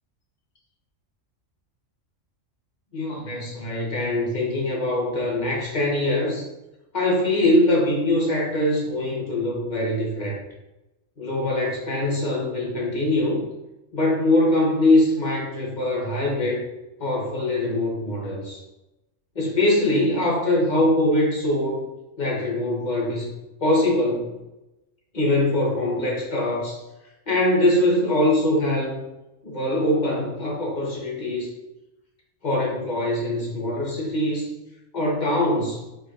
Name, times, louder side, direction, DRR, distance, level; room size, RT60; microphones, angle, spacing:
voice 1, 2.9-6.4 6.9-10.4 11.2-13.4 13.9-16.6 17.0-18.6 19.3-21.8 22.2-23.3 23.6-24.3 25.1-26.8 27.3-29.0 29.4-31.5 32.4-34.5 34.9-35.8, left 1 dB, 35° left, -4 dB, 1.2 m, -23 dB
4.9 x 4.1 x 2.5 m, 0.96 s
omnidirectional pair, 1.3 m